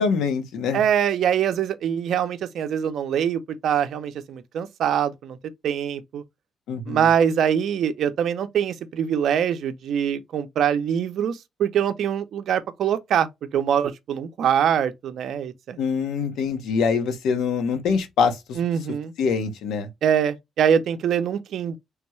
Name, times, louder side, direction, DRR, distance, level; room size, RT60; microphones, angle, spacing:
voice 1, 0.0-0.8 6.7-7.0 15.8-18.6 19.2-19.9, left 5 dB, 85° left, 0.8 m, -24 dB
voice 2, 0.7-5.4 5.6-6.2 6.9-15.8 18.6-19.1 20.0-21.8, right 8 dB, 70° right, 0.5 m, -23 dB
3.4 x 2.2 x 3.0 m
cardioid pair, 90°, 0 cm